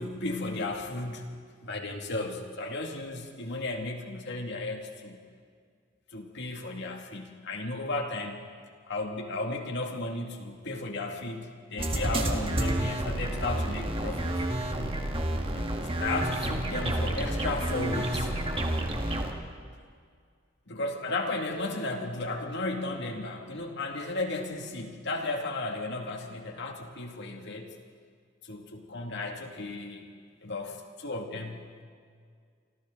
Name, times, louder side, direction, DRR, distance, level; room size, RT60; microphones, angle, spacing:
voice 1, 0.0-5.2 6.1-8.4 8.9-14.3 15.5-18.3 20.7-27.7 28.4-30.0 30.4-30.8 31.0-31.8, left 2 dB, 60° left, 2 dB, 2.4 m, -34 dB
sound 1, 11.8-19.3, right 1 dB, 30° right, 1.9 m, -30 dB
28.5 x 25.0 x 3.9 m, 2.1 s
head